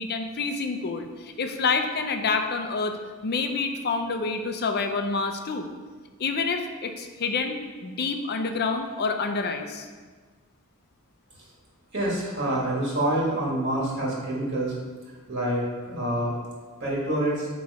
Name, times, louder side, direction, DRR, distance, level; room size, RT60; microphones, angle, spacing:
voice 1, 0.0-2.9 3.2-5.6 6.2-7.6 7.8-9.9, left 4 dB, 45° left, 6 dB, 0.5 m, -27 dB
voice 2, 11.9-14.7 15.3-16.3 16.8-17.5, right 1 dB, 50° right, -5 dB, 1.7 m, -27 dB
8.4 x 3.1 x 4.7 m, 1.4 s
head